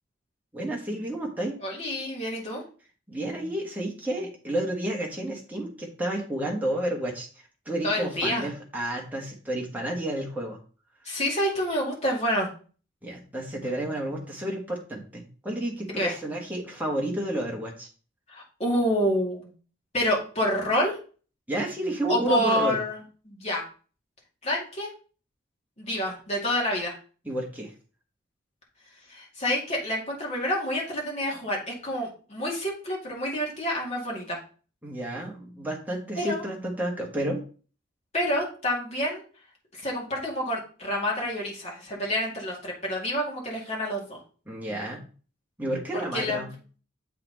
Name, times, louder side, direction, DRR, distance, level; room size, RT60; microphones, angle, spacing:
voice 1, 0.5-1.6 3.1-10.6 13.0-17.9 21.5-22.8 27.2-27.7 34.8-37.4 44.5-45.0 45.6-46.5, right 1 dB, 10° right, -2 dB, 1.3 m, -31 dB
voice 2, 1.6-2.6 7.8-8.5 11.0-12.5 15.8-16.1 18.3-19.5 19.9-21.0 22.1-23.0 23.3-23.6 24.4-24.9 25.8-27.0 29.1-34.4 36.2-36.4 38.1-39.2 39.7-44.2 45.9-46.5, equal, 30° left, -2 dB, 2.2 m, -28 dB
7.5 x 4.2 x 4.0 m, 0.38 s
head